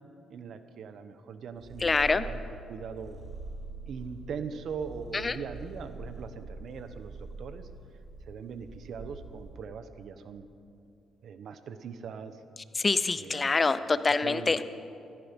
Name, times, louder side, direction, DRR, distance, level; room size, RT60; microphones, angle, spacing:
voice 1, 0.3-2.4 2.7-3.2 3.9-7.7 8.3-10.5 11.2-12.4 13.2-13.6 14.2-14.6, right 6 dB, 65° right, 10 dB, 0.9 m, -41 dB
Purr, 1.5-9.6, right 2 dB, 45° right, 2.7 m, -44 dB
voice 2, 1.8-2.3 5.1-5.4 12.7-14.6, left 3 dB, 30° left, 14 dB, 0.6 m, -26 dB
14.5 x 14.5 x 5.2 m, 2.6 s
cardioid pair, 90°, 0 cm